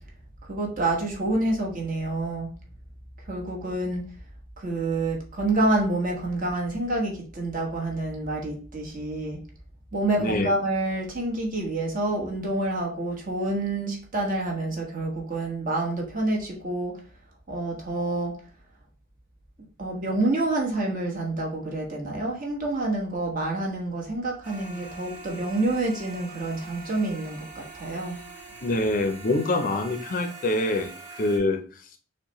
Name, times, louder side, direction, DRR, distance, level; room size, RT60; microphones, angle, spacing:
voice 1, 0.5-2.5 3.3-4.0 4.6-9.4 9.9-16.9 17.5-18.3 19.8-28.2, right 2 dB, 45° right, -1 dB, 1.1 m, -28 dB
voice 2, 10.2-10.5 28.6-30.9 31.2-31.6, left 2 dB, 45° left, 6 dB, 0.5 m, -25 dB
sound 1, 24.4-31.4, right 3 dB, 10° right, 1.6 m, -44 dB
6.2 x 2.2 x 3.0 m, 0.40 s
head